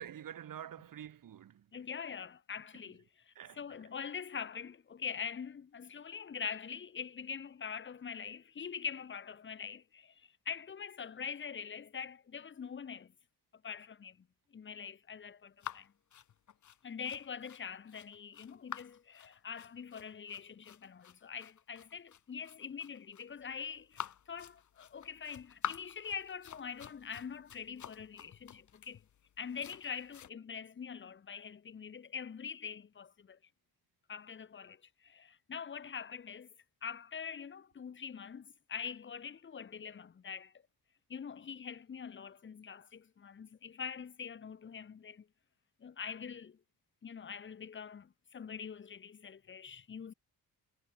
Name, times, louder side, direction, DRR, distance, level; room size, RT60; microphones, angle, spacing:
voice 1, 0.0-1.8 2.7-2.8 3.3-3.9, right 10 dB, 55° right, 2.6 m, -48 dB
voice 2, 1.7-13.1 13.6-14.3 14.5-15.9 16.8-29.0 29.4-33.4 34.1-36.5 36.8-40.5 41.1-45.3 45.8-46.6 47.0-50.1, left 7 dB, 30° left, 1.1 m, -44 dB
sound 1, 15.6-30.3, left 9 dB, 50° left, 1.6 m, -48 dB
wide cardioid pair, 160°, 38 cm